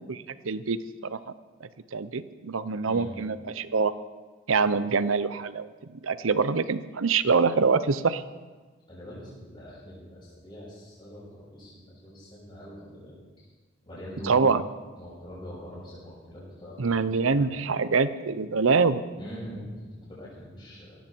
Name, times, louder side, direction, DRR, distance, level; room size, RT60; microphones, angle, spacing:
voice 1, 0.1-1.2 1.9-3.9 4.5-5.7 6.0-8.2 14.2-14.6 16.8-19.0, right 4 dB, 80° right, 14 dB, 0.7 m, -25 dB
voice 2, 2.8-3.1 8.9-13.5 13.9-14.5 15.0-17.0 17.3-17.5 19.2-21.0, equal, 25° left, -11 dB, 5.9 m, -43 dB
17.0 x 15.0 x 4.5 m, 1.3 s
head